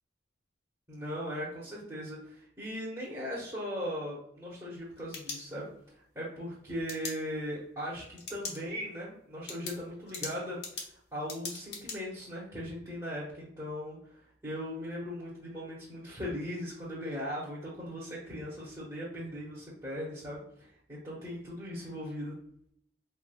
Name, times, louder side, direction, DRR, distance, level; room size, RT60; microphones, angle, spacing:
voice 1, 0.9-5.7 5.9-10.8 11.1-22.4, equal, 20° right, -9 dB, 1.2 m, -39 dB
sound 1, 4.8-5.9 6.9-7.1 8.2-8.6 9.0-9.1 9.5-12.0, left 4 dB, 65° left, 1.1 m, -40 dB
4.9 x 3.3 x 2.3 m, 0.68 s
head